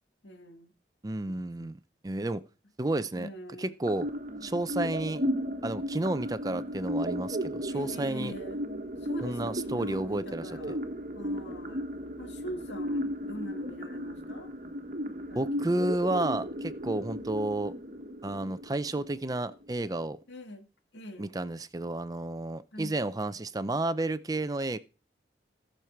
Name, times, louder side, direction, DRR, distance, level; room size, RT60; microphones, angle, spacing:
voice 1, 0.2-0.7 1.2-1.7 3.1-3.8 7.7-8.7 9.0-10.8 11.1-11.9 12.2-14.5 15.3-15.7 20.3-20.7 20.9-21.3 22.7-23.0, equal, 85° left, 1.9 m, -43 dB
voice 2, 1.0-1.8 2.0-2.4 2.8-3.3 3.6-4.1 4.4-5.2 5.6-8.3 9.2-10.8 15.3-17.7 18.2-20.2 21.2-24.8, right 2 dB, 20° right, 0.5 m, -31 dB
sound 1, 3.9-19.9, equal, 45° right, 1.3 m, -35 dB
17.0 x 6.5 x 4.5 m
head